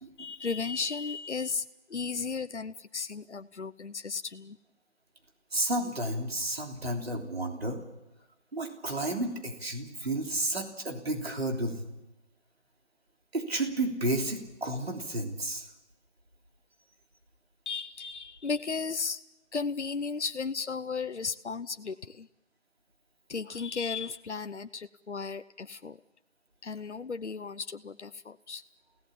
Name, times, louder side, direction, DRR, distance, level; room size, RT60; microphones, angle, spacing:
voice 1, 0.2-4.6 17.7-19.2 19.5-22.3 23.3-26.0 26.6-28.6, left 5 dB, 75° left, 11 dB, 0.9 m, -35 dB
voice 2, 5.5-7.8 8.5-11.9 13.3-15.7, right 1 dB, 60° right, 2 dB, 3.4 m, -32 dB
30.0 x 17.5 x 7.2 m, 0.98 s
figure-of-eight pair, 175°, 35 cm